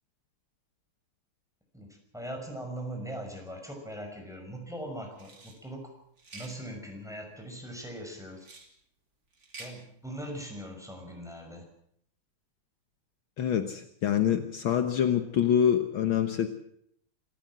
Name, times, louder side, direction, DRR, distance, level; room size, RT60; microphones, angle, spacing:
voice 1, 1.7-5.9 6.3-8.5 9.6-11.7, right 1 dB, ahead, 2 dB, 6.0 m, -40 dB
sound 1, 5.2-5.6 6.2-6.6 8.4-8.7 9.3-9.7, right 3 dB, 40° right, 3.4 m, -47 dB
voice 2, 13.4-16.5, left 9 dB, 70° left, 8 dB, 1.9 m, -26 dB
26.5 x 14.0 x 7.6 m, 0.72 s
omnidirectional pair, 2.4 m